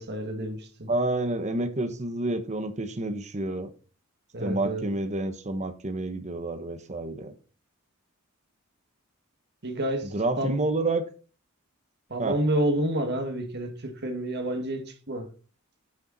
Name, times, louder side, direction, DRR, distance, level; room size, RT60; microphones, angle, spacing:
voice 1, 0.0-0.9 4.3-4.8 9.6-10.5 12.1-15.3, right 1 dB, 50° right, 2.1 m, -29 dB
voice 2, 0.9-3.7 4.4-7.3 10.1-11.1 12.2-12.4, right 2 dB, 35° right, 1.1 m, -29 dB
10.5 x 6.9 x 4.1 m
head